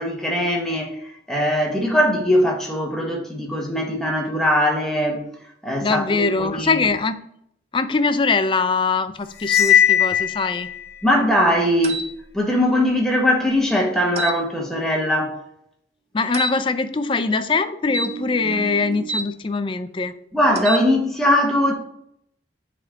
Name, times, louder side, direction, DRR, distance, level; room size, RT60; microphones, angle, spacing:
voice 1, 0.0-5.2 5.6-6.9 11.0-12.0 12.3-15.4 20.3-21.7, left 1 dB, 5° left, 0 dB, 1.1 m, -20 dB
voice 2, 5.8-7.2 7.7-10.7 16.1-20.1, left 4 dB, 25° left, 11 dB, 0.4 m, -22 dB
Cymbal, 9.4-10.9, left 10 dB, 55° left, 1.1 m, -18 dB
sound 1, 11.8-12.1 14.2-14.4 16.3-16.6 17.9-19.3 20.5-20.9, right 3 dB, 35° right, 0.4 m, -28 dB
7.8 x 3.6 x 3.7 m, 0.71 s
head